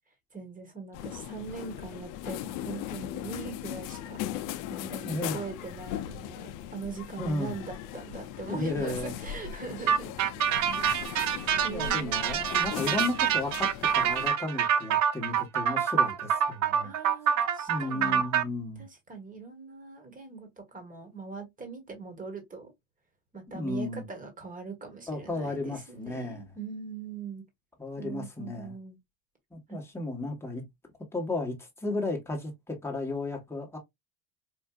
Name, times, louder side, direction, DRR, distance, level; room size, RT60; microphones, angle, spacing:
voice 1, 0.3-4.3 4.7-10.4 11.0-11.2 11.6-12.4 16.8-18.2 18.8-22.7 23.3-27.4 28.0-29.0 29.7-29.8, right 4 dB, 20° right, 1.4 m, -41 dB
sound 1, 0.9-14.3, left 11 dB, 50° left, 0.5 m, -39 dB
voice 2, 5.0-5.4 7.2-7.5 8.5-9.1 11.7-16.9 17.7-18.9 23.5-24.0 25.1-26.4 27.8-28.7 29.5-30.6 31.1-33.8, left 2 dB, 5° left, 1.1 m, -34 dB
sound 2, 9.9-18.4, right 8 dB, 45° right, 0.6 m, -26 dB
4.6 x 2.4 x 2.3 m
supercardioid pair, 125°, 41 cm